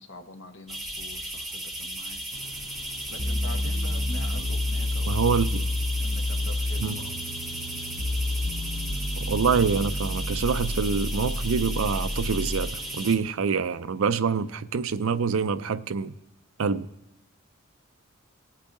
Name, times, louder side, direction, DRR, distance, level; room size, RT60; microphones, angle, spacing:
voice 1, 0.0-2.2 3.1-5.3 6.0-7.0, left 1 dB, 60° left, 1.1 m, -44 dB
sound 1, 0.7-13.2, right 1 dB, ahead, 0.9 m, -36 dB
sound 2, 2.3-13.3, left 2 dB, 90° left, 0.7 m, -47 dB
sound 3, 3.2-12.8, left 1 dB, 25° left, 0.6 m, -29 dB
voice 2, 5.1-5.7 6.8-7.0 9.2-16.1 16.6-16.9, right 5 dB, 75° right, 0.5 m, -26 dB
19.5 x 8.4 x 2.6 m
head